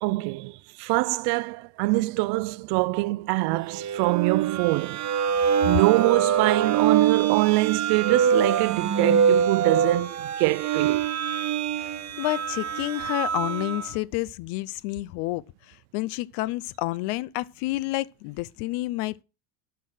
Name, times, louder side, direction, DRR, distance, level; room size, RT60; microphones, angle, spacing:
voice 1, 0.0-5.0 5.7-11.0, right 23 dB, 60° right, 0.5 m, -24 dB
sound 1, 3.7-13.9, right 8 dB, 40° right, 1.1 m, -24 dB
voice 2, 11.7-19.2, left 19 dB, 65° left, 0.5 m, -30 dB
12.5 x 4.6 x 5.8 m
supercardioid pair, 115°, 44 cm